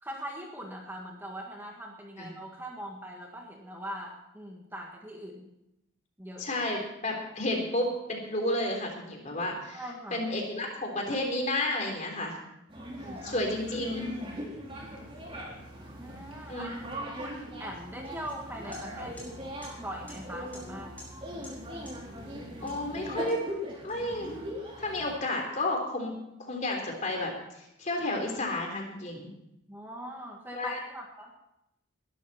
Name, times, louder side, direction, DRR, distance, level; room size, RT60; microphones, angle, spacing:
voice 1, 0.0-5.5 6.2-6.5 9.7-10.3 12.8-13.3 16.0-16.7 17.2-19.2 19.8-21.0 29.7-31.3, equal, 10° right, 0 dB, 1.7 m, -41 dB
voice 2, 6.4-9.8 10.1-12.4 13.2-14.1 16.5-16.7 22.6-23.4 23.8-24.3 24.8-26.1 26.4-29.3 30.5-30.8, left 1 dB, 35° left, 2 dB, 3.5 m, -31 dB
sound 1, 12.7-25.2, equal, 25° right, 3.8 m, -40 dB
sound 2, 18.3-18.4 18.7-18.8 19.2-19.3 19.6-19.7 20.1-20.2 20.5-20.6 21.0-21.1 21.4-21.5 21.9-22.0 22.7-22.8 23.3-24.3, left 1 dB, 5° left, 5.7 m, -48 dB
20.5 x 12.5 x 4.3 m, 0.83 s
head